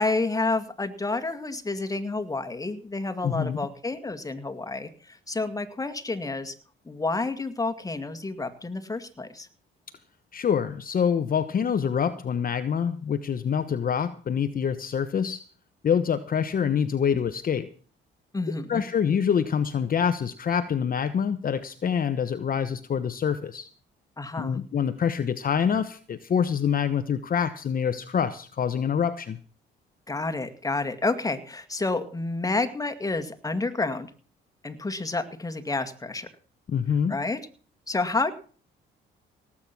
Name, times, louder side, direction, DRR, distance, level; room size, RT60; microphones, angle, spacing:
voice 1, 0.0-6.5 6.9-9.5 18.3-18.8 24.2-24.6 30.1-34.1 34.6-36.3 37.1-37.4 37.9-38.3, left 3 dB, 15° left, 7 dB, 2.1 m, -29 dB
voice 2, 3.2-3.6 10.3-15.4 15.8-17.7 18.7-23.7 24.4-29.4 36.7-37.2, left 7 dB, 45° left, 11 dB, 1.0 m, -26 dB
18.0 x 8.7 x 6.1 m, 0.41 s
cardioid pair, 90°, 20 cm